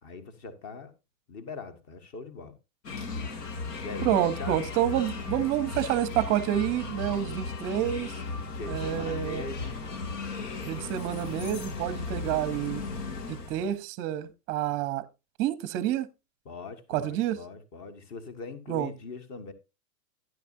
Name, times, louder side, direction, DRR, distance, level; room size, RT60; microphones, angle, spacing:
voice 1, 0.0-0.9 1.3-2.6 3.8-4.6 8.5-9.8 16.4-19.5, left 4 dB, 35° left, 1.7 m, -41 dB
sound 1, 2.8-13.7, left 4 dB, 85° left, 2.4 m, -36 dB
voice 2, 4.0-8.1 8.7-9.4 10.6-12.8 13.3-15.0 15.4-16.1 16.9-17.4 18.7-18.9, right 12 dB, 25° right, 0.7 m, -28 dB
11.0 x 10.5 x 2.6 m
supercardioid pair, 155°, 47 cm